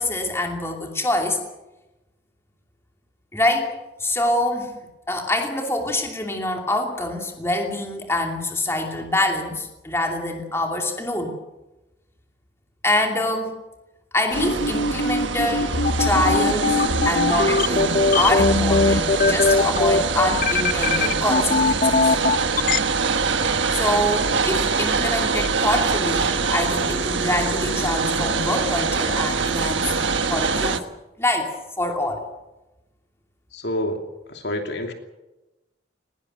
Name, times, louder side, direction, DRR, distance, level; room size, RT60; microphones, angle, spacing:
voice 1, 0.0-1.4 3.3-3.7 4.0-4.7 5.1-11.4 12.8-13.6 14.1-22.1 23.7-29.9 30.3-30.8 31.2-32.2, left 1 dB, 15° left, 2 dB, 2.7 m, -25 dB
sound 1, 14.3-30.8, right 4 dB, 80° right, 1.4 m, -24 dB
sound 2, 14.4-22.8, left 3 dB, 45° left, 0.7 m, -20 dB
voice 2, 33.5-34.0 34.3-34.9, left 1 dB, 65° left, 4 dB, 2.8 m, -27 dB
20.0 x 18.5 x 7.9 m, 1.0 s
head